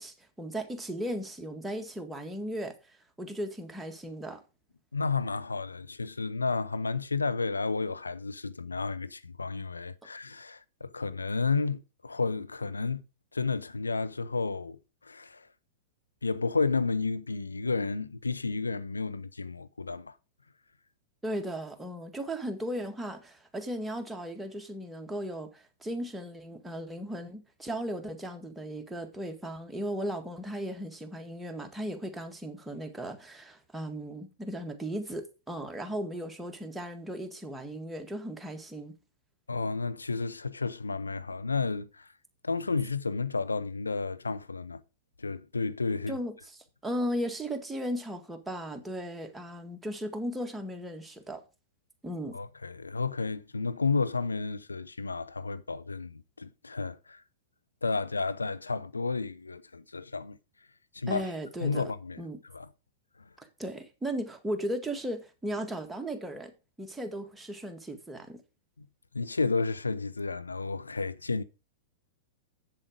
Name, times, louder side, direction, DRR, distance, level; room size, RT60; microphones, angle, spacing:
voice 1, 0.0-4.4 21.2-38.9 46.1-51.4 52.0-52.4 61.1-61.9 62.2-62.4 63.4-66.5 66.8-68.4, equal, 5° right, 1.8 m, -36 dB
voice 2, 4.9-13.0 13.3-15.5 16.2-20.1 39.5-42.1 42.4-44.8 45.2-46.1 52.3-57.2 57.8-60.4 60.9-61.2 61.6-62.2 62.5-62.7 69.1-71.4, left 4 dB, 85° left, 0.7 m, -32 dB
7.6 x 7.5 x 5.1 m
figure-of-eight pair, 105°, 0 cm